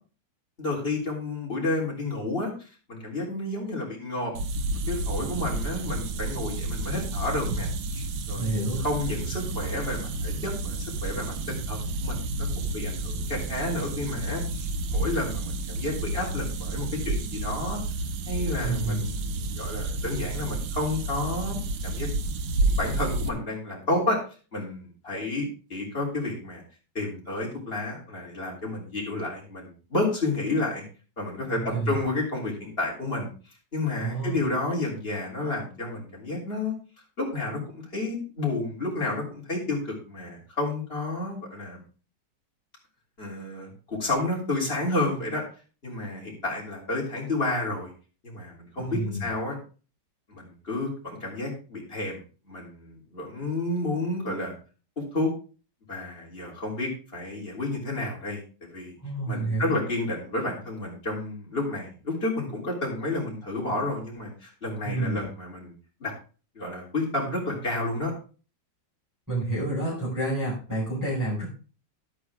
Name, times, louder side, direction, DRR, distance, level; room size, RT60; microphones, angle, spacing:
voice 1, 0.6-4.3 4.9-7.7 7.9-8.5 8.8-17.8 18.3-22.1 22.6-24.2 24.5-26.6 26.9-30.8 31.2-33.3 33.7-36.8 37.2-41.8 43.2-45.4 45.8-47.9 48.2-49.6 50.3-52.2 52.5-54.5 55.0-55.3 55.9-58.4 58.7-58.9 59.3-65.7 66.0-66.1 66.6-68.1, left 2 dB, 30° left, -2 dB, 3.7 m, -31 dB
sound 1, 4.3-23.3, right 2 dB, 80° right, 1.6 m, -30 dB
voice 2, 8.3-8.8 18.6-19.0 31.7-32.0 34.0-34.4 48.9-49.3 59.0-59.7 64.8-65.2 69.3-71.4, right 2 dB, 10° right, -7 dB, 5.6 m, -29 dB
11.0 x 8.7 x 3.6 m, 0.36 s
omnidirectional pair, 2.0 m